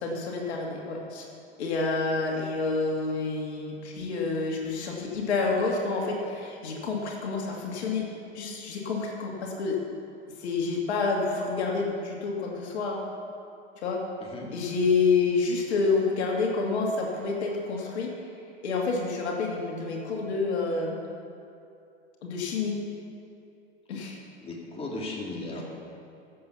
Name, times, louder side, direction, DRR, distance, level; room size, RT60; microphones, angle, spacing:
voice 1, 0.0-1.3 1.6-8.1 8.3-9.8 10.4-13.0 13.8-14.0 14.5-18.1 18.6-21.0 22.2-22.8 23.9-24.2 25.6-25.7, left 4 dB, 70° left, -1 dB, 2.4 m, -28 dB
voice 2, 14.2-14.5 24.4-25.6, left 2 dB, 15° left, -3 dB, 2.5 m, -36 dB
15.5 x 7.7 x 5.9 m, 2.6 s
hypercardioid pair, 100°, 34 cm